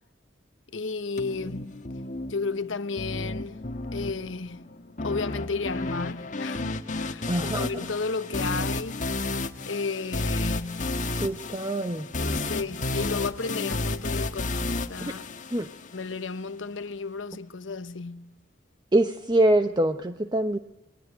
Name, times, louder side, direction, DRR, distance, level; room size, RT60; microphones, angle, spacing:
voice 1, 0.7-1.8 2.3-3.6 3.9-4.7 5.0-9.0 9.7-11.0 12.2-15.2 15.9-18.3, left 4 dB, 75° left, 1.0 m, -33 dB
sound 1, 1.2-16.2, left 2 dB, 40° left, 1.5 m, -32 dB
voice 2, 7.3-7.7 11.2-12.1 15.1-15.2 15.5-15.7 18.9-20.6, right 1 dB, 25° right, 0.9 m, -24 dB
30.0 x 21.5 x 9.0 m
head